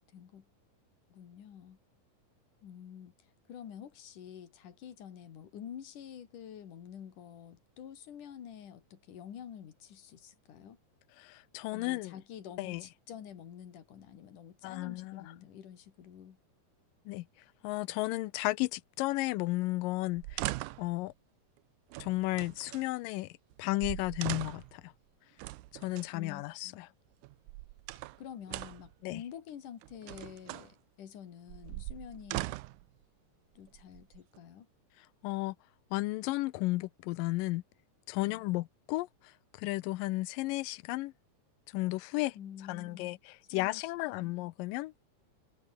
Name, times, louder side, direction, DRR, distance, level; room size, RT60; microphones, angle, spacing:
voice 1, 0.1-0.5 1.1-1.8 2.6-10.8 11.7-16.4 26.1-26.8 28.0-32.6 33.6-34.7 38.2-38.4 42.3-43.2 43.5-44.3, left 9 dB, 70° left, 3.8 m, -48 dB
voice 2, 11.2-12.1 12.6-12.8 14.6-15.3 17.1-17.3 17.6-20.5 20.8-21.1 22.0-23.3 23.6-24.9 25.7-26.9 29.0-29.2 35.2-35.6 35.9-37.6 38.1-41.1 41.7-42.4 42.7-44.9, left 19 dB, 85° left, 2.3 m, -33 dB
sound 1, 20.1-20.9 21.9-22.9 23.5-23.6 23.8-24.8 25.4-26.1 27.2-28.2 28.5-28.9 29.8-30.7 31.5-32.9 33.7-34.4, right 19 dB, 75° right, 2.0 m, -40 dB
omnidirectional pair, 3.8 m